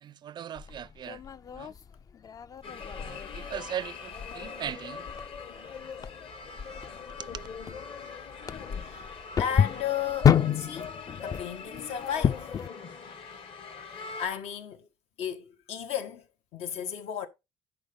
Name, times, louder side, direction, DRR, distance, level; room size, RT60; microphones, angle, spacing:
voice 1, 0.0-1.2 1.5-1.7 2.9-5.1 7.2-7.5, right 10 dB, 45° right, 0.4 m, -39 dB
sound 1, 0.6-12.7, left 8 dB, 35° left, 0.4 m, -30 dB
sound 2, 2.6-14.3, left 5 dB, 55° left, 2.1 m, -42 dB
voice 2, 8.8-12.5 13.9-14.9 15.2-17.3, left 9 dB, 80° left, 1.5 m, -35 dB
10.5 x 4.3 x 5.3 m
cardioid pair, 125°, 11 cm